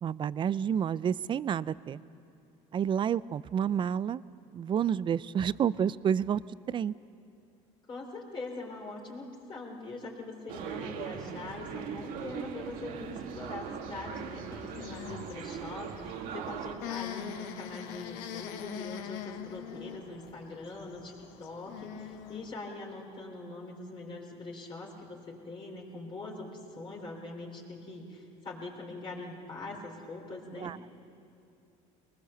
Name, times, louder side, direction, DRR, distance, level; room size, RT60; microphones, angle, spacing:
voice 1, 0.0-2.0 2.7-4.2 4.5-6.4 6.7-6.9 30.6-30.8, right 8 dB, 35° right, 19 dB, 0.4 m, -29 dB
voice 2, 7.9-30.7, left 2 dB, 35° left, -1 dB, 3.6 m, -42 dB
sound 1, 10.5-16.8, right 7 dB, 70° right, 1.7 m, -40 dB
sound 2, 14.6-22.6, left 10 dB, 85° left, 1.3 m, -43 dB
22.5 x 20.0 x 6.9 m, 2.6 s
cardioid pair, 110°, 15 cm